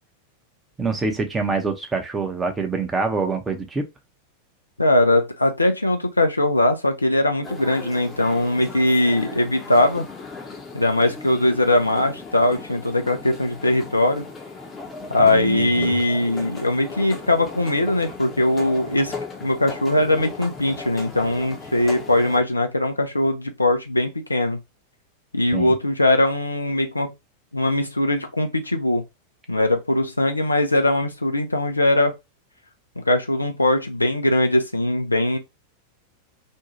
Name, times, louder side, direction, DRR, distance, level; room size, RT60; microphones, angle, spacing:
voice 1, 0.8-3.9 15.2-16.0 25.5-25.7, right 4 dB, 15° right, 0.7 m, -25 dB
voice 2, 4.8-10.1 10.7-14.3 15.1-19.1 19.4-24.6 25.3-27.1 27.5-29.0 29.5-32.2 33.0-35.4, left 1 dB, 85° left, 0.5 m, -20 dB
sound 1, 7.4-22.4, left 4 dB, 15° left, 0.8 m, -37 dB
2.6 x 2.3 x 2.9 m
figure-of-eight pair, 90°, 0 cm